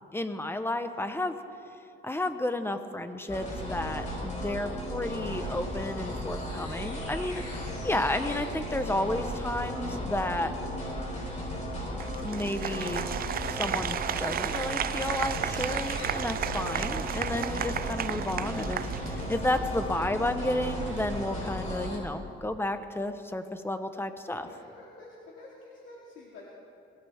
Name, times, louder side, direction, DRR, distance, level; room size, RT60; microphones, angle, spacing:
voice 1, 0.1-1.4 2.0-10.5 12.2-13.1 13.5-24.5, left 1 dB, 10° left, 8 dB, 1.2 m, -32 dB
sound 1, 3.3-22.0, equal, 35° left, 4.5 m, -35 dB
Applause, 12.0-19.6, right 10 dB, 50° right, 0.4 m, -34 dB
sound 2, 15.0-21.3, right 7 dB, 75° right, 1.1 m, -43 dB
voice 2, 24.4-26.5, left 2 dB, 75° left, -4 dB, 2.4 m, -49 dB
23.0 x 17.0 x 3.7 m, 2.6 s
cardioid pair, 90°, 20 cm